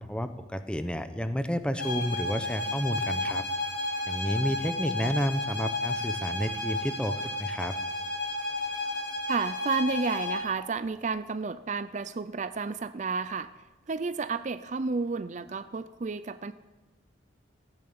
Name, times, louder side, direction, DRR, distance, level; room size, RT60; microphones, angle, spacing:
voice 1, 0.0-3.4 4.1-7.7, equal, 5° left, 10 dB, 0.8 m, -31 dB
sound 1, 1.8-10.5, left 2 dB, 55° left, 5.9 m, -32 dB
voice 2, 9.3-13.5 13.9-16.5, right 4 dB, 40° right, 13 dB, 0.4 m, -31 dB
15.0 x 10.5 x 8.7 m, 1.2 s
head